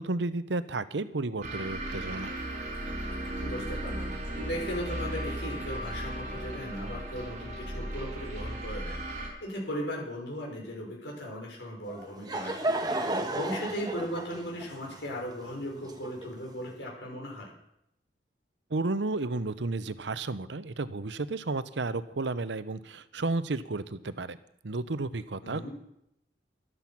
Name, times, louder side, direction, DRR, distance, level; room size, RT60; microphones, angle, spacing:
voice 1, 0.0-2.3 18.7-24.4 24.6-25.7, right 3 dB, 90° right, 14 dB, 0.8 m, -32 dB
sound 1, 1.4-9.3, right 1 dB, 45° right, 4.0 m, -36 dB
voice 2, 3.4-17.5 25.4-25.7, equal, 90° left, -2 dB, 5.7 m, -37 dB
Laughter / Crowd, 11.9-16.5, right 2 dB, 25° right, 1.3 m, -33 dB
13.5 x 12.5 x 5.9 m, 0.79 s
head